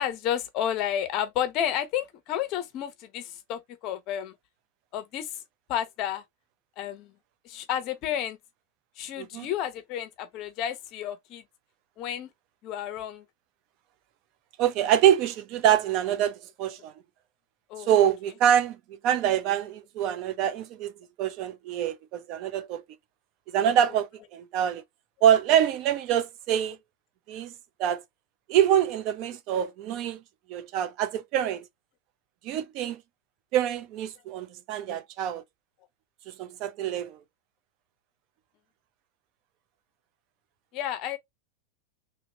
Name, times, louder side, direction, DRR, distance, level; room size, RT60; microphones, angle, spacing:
voice 1, 0.0-4.4 4.9-5.4 5.7-6.2 6.8-7.1 7.4-8.4 9.0-11.4 12.0-12.3 12.6-13.2 17.7-17.9 40.7-41.2, left 10 dB, 40° left, 0.8 m, -31 dB
voice 2, 9.2-9.5 14.6-16.9 17.9-18.8 19.0-20.9 21.2-22.8 23.5-24.8 25.2-26.8 27.3-27.5 27.8-28.0 28.5-30.2 30.5-31.6 32.4-33.0 33.5-35.4 36.4-37.2, right 10 dB, 45° right, 0.5 m, -25 dB
3.0 x 2.9 x 2.9 m
supercardioid pair, 140°, 0 cm